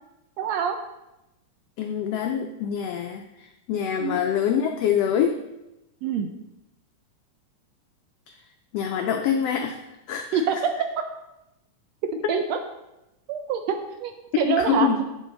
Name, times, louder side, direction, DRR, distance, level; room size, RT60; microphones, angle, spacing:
voice 1, 0.4-0.8 4.0-4.2 6.0-6.3 10.3-10.6 12.3-12.6 13.3-13.8 14.0-14.1 14.4-14.9, right 6 dB, 80° right, 6 dB, 1.6 m, -25 dB
voice 2, 1.8-3.2 3.7-5.4 8.7-9.8 10.1-10.4 14.4-15.0, left 8 dB, 85° left, 4 dB, 1.4 m, -25 dB
8.3 x 7.1 x 3.9 m, 0.92 s
omnidirectional pair, 3.4 m